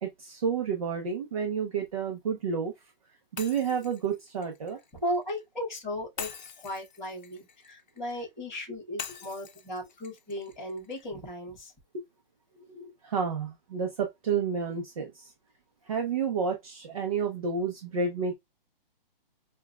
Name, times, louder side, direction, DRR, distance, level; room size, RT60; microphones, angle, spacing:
voice 1, 0.0-2.7 3.3-4.8 12.7-15.3 15.9-18.3, right 6 dB, 40° right, 0.8 m, -30 dB
Shatter, 3.4-5.4 6.2-8.3 9.0-11.1, left 6 dB, 50° left, 0.7 m, -44 dB
voice 2, 4.9-11.7, equal, ahead, 0.6 m, -36 dB
6.6 x 2.3 x 2.3 m
hypercardioid pair, 175°, 29 cm